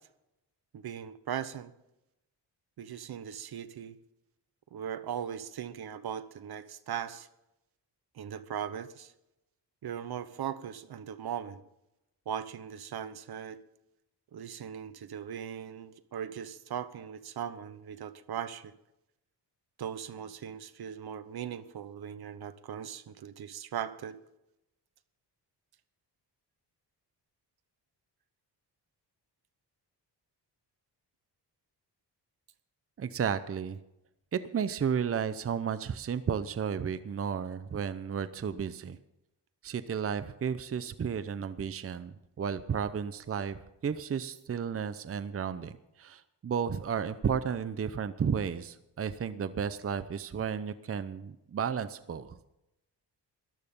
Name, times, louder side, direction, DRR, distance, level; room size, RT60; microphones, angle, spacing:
voice 1, 0.7-1.7 2.8-4.0 4.7-7.3 8.1-9.1 9.8-11.6 12.3-13.6 14.3-18.7 19.8-24.2, right 9 dB, 65° right, 14 dB, 1.0 m, -39 dB
voice 2, 33.0-33.8 34.3-39.0 39.6-45.7 46.0-52.4, right 7 dB, 35° right, 13 dB, 0.7 m, -33 dB
14.0 x 12.0 x 5.4 m, 0.87 s
cardioid pair, 110°, 42 cm